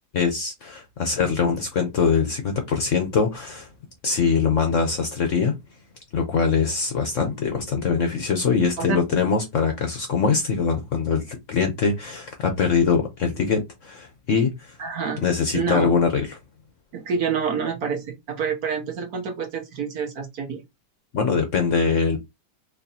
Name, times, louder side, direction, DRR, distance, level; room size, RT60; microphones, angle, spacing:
voice 1, 0.1-3.7 4.0-5.5 6.1-14.8 15.2-16.4 21.1-22.2, left 5 dB, 55° left, 0.9 m, -23 dB
voice 2, 14.8-15.2 15.5-15.9 16.9-20.6, right 6 dB, 60° right, 1.2 m, -27 dB
4.4 x 2.7 x 2.7 m
omnidirectional pair, 2.0 m